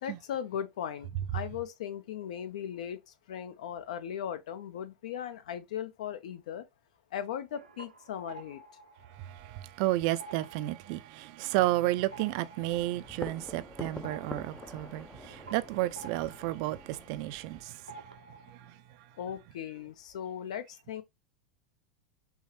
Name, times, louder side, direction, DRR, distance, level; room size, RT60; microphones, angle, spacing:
voice 1, 0.0-3.0 3.3-6.6 7.1-8.6 19.2-21.0, left 9 dB, 60° left, 0.6 m, -38 dB
sound 1, 7.3-9.8 10.1-17.6 17.9-18.7, right 3 dB, 90° right, 0.6 m, -51 dB
voice 2, 9.1-18.8, right 17 dB, 50° right, 0.3 m, -32 dB
sound 2, 12.7-17.7, left 2 dB, 10° left, 0.4 m, -46 dB
5.5 x 2.1 x 3.0 m
figure-of-eight pair, 90°, 4 cm